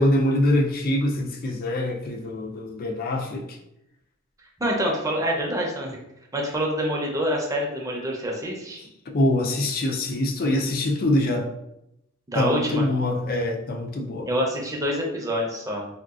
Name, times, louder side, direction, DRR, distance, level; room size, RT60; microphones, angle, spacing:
voice 1, 0.0-3.6 9.1-11.5 12.3-14.3, left 1 dB, 45° left, 2 dB, 0.4 m, -24 dB
voice 2, 4.6-6.0 6.3-8.8 12.3-12.9 14.3-15.9, equal, 15° right, -1 dB, 0.6 m, -26 dB
3.6 x 2.3 x 2.4 m, 0.82 s
head